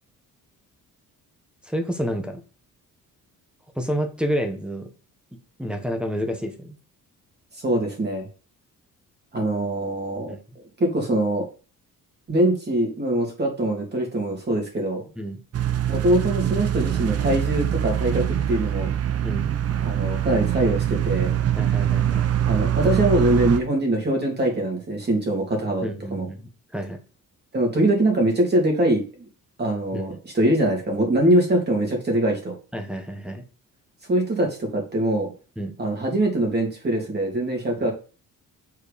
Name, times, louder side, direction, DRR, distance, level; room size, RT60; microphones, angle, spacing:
voice 1, 1.6-2.4 3.7-4.9 5.6-6.7 10.3-10.4 15.2-15.4 19.2-19.5 21.6-22.3 25.8-27.0 29.9-30.1 32.7-33.4 35.6-35.7 37.8-37.9, equal, 5° right, 6 dB, 1.1 m, -29 dB
voice 2, 7.6-8.3 9.3-10.3 10.8-11.5 12.3-15.0 15.9-18.9 19.8-21.3 22.5-26.3 27.5-29.3 29.6-32.5 34.1-35.3 35.8-37.9, right 1 dB, 30° right, 1 dB, 2.6 m, -23 dB
sound 1, 15.5-23.6, right 10 dB, 45° right, 0.7 m, -23 dB
7.6 x 4.7 x 5.1 m, 0.35 s
cardioid pair, 145°, 34 cm